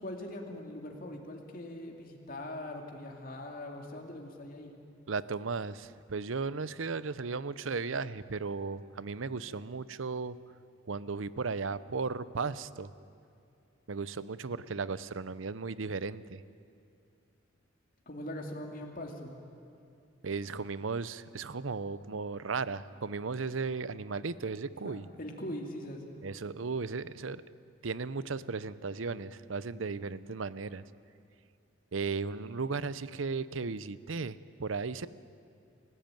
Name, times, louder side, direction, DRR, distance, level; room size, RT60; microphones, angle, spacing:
voice 1, 0.0-4.7 18.1-19.3 24.8-26.1, left 1 dB, 45° left, 2 dB, 2.8 m, -41 dB
voice 2, 5.1-10.4 10.9-12.9 13.9-16.4 20.2-25.1 26.2-27.4 27.8-30.8 31.9-35.1, right 4 dB, 75° right, 17 dB, 0.7 m, -35 dB
29.5 x 16.0 x 9.2 m, 2.5 s
head